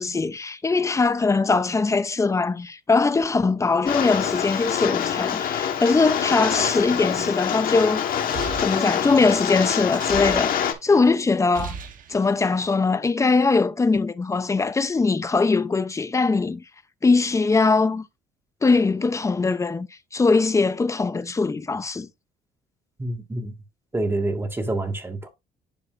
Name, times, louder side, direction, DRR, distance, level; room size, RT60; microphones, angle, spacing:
voice 1, 0.0-8.2 8.6-11.8 12.1-16.6 17.0-18.1 18.6-19.9 20.1-22.1, left 4 dB, 20° left, 0.7 m, -21 dB
Rain, 3.9-10.7, left 9 dB, 60° left, 1.4 m, -25 dB
sound 1, 8.1-11.0 11.3-12.7, right 6 dB, 55° right, 1.2 m, -37 dB
voice 2, 23.0-23.5 23.9-25.3, right 2 dB, 15° right, 1.9 m, -27 dB
11.0 x 4.7 x 2.6 m
cardioid pair, 110°, 17 cm